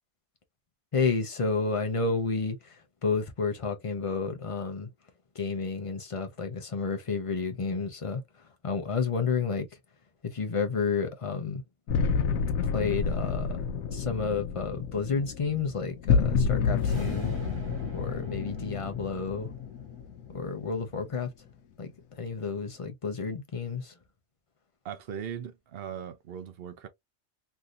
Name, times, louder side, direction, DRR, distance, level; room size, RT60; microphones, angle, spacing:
voice 1, 0.9-4.9 5.3-9.7 10.2-11.6 12.7-13.6 13.9-17.4 17.9-19.5 20.3-21.5 21.8-23.9, left 4 dB, 40° left, 0.4 m, -31 dB
sound 1, 11.9-20.8, left 6 dB, 85° left, 1.0 m, -29 dB
sound 2, 16.7-21.1, right 1 dB, 25° right, 1.1 m, -44 dB
voice 2, 24.8-26.9, right 8 dB, 55° right, 0.8 m, -39 dB
3.3 x 2.6 x 2.4 m
omnidirectional pair, 1.4 m